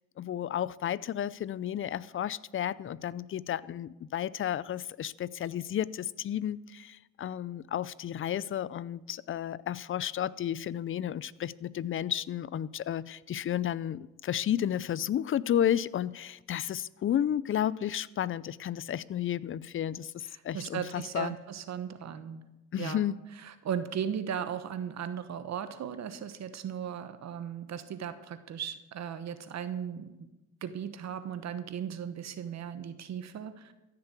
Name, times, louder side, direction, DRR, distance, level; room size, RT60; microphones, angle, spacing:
voice 1, 0.2-21.3 22.7-23.2, left 10 dB, 45° left, 20 dB, 0.5 m, -32 dB
voice 2, 20.3-22.4 22.8-23.0 23.4-30.2 30.6-33.7, right 8 dB, 60° right, 11 dB, 1.1 m, -37 dB
14.5 x 6.8 x 8.2 m, 1.0 s
cardioid pair, 90°, 30 cm